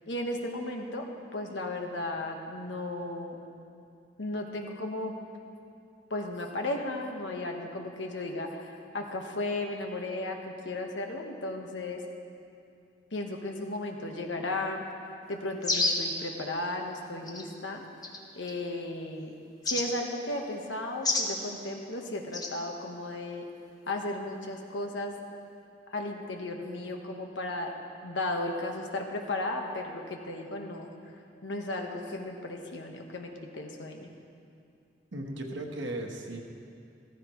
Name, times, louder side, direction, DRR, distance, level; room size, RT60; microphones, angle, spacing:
voice 1, 0.1-3.4 4.2-5.1 6.1-12.0 13.1-14.8 15.3-17.8 18.4-19.3 19.7-23.4 23.9-25.2 25.9-27.7 28.0-30.9 31.4-34.1, left 2 dB, 80° left, 2 dB, 1.3 m, -35 dB
sound 1, 15.6-16.1 17.3-17.4 18.0-18.5 19.6-19.9 21.0-21.3 22.3-22.5, left 2 dB, 20° left, 1.0 m, -28 dB
voice 2, 35.1-36.4, right 1 dB, 75° right, 2 dB, 1.3 m, -36 dB
15.0 x 14.0 x 3.1 m, 2.5 s
head